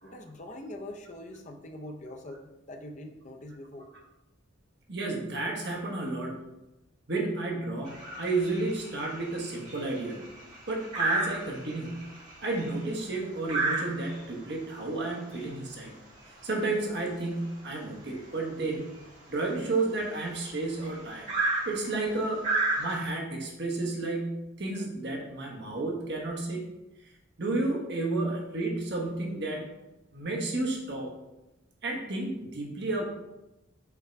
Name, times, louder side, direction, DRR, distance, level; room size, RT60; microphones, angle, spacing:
voice 1, 0.0-3.9, left 1 dB, 35° left, 4 dB, 0.6 m, -43 dB
voice 2, 4.9-6.4 7.1-10.2 10.7-12.1 12.4-15.9 16.4-18.8 19.3-21.3 21.6-22.5 22.8-26.7 27.4-29.6 30.1-31.1 31.8-33.0, right 2 dB, 55° right, -1 dB, 1.3 m, -32 dB
sound 1, 7.8-23.1, right 3 dB, 35° right, 1.8 m, -34 dB
5.8 x 3.7 x 4.5 m, 0.95 s
head